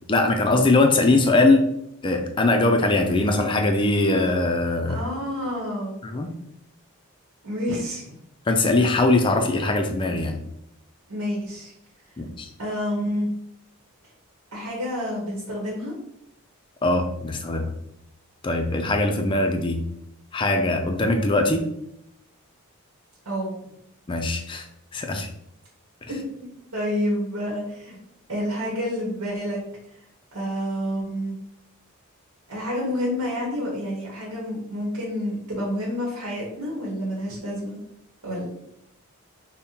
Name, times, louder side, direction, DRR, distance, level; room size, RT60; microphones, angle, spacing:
voice 1, 0.1-1.7 2.0-5.0 6.0-6.3 8.5-10.4 12.2-12.5 16.8-17.7 18.4-19.8 20.3-21.7 24.1-24.7 24.9-25.3 26.0-26.1, left 2 dB, 20° left, 4 dB, 0.3 m, -21 dB
voice 2, 4.9-6.0 7.4-8.1 11.1-11.7 12.6-13.3 14.5-15.9 23.2-23.6 26.1-26.3 26.7-28.0 28.3-29.6 30.3-31.3 32.5-37.8 38.2-38.5, equal, 85° right, -3 dB, 1.0 m, -28 dB
5.2 x 2.1 x 2.8 m, 0.78 s
head